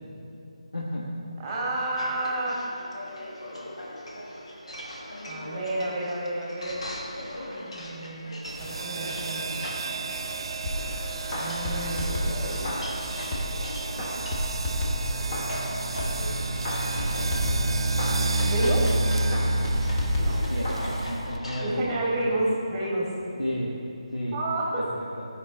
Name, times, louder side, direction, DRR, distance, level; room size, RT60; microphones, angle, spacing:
voice 1, 0.7-1.1 20.2-22.4 23.4-23.8 24.1-24.5 24.8-25.3, equal, 85° left, -5 dB, 1.2 m, -33 dB
voice 2, 1.4-2.6 5.2-6.8 7.3-8.3 8.6-9.6 11.3-12.9 16.2-16.3 18.4-18.9 20.2-20.4 21.6-23.1 24.3-24.9, right 1 dB, 15° right, -3 dB, 1.5 m, -30 dB
sound 1, 2.0-21.7, left 1 dB, 60° left, 1.4 m, -40 dB
sound 2, 8.5-21.4, right 2 dB, 45° right, 0.4 m, -30 dB
sound 3, 10.7-13.6 14.0-15.7 16.0-19.0 19.3-21.0 21.3-21.4, equal, 25° left, 1.2 m, -31 dB
14.5 x 5.3 x 4.0 m, 2.6 s
figure-of-eight pair, 155°, 3 cm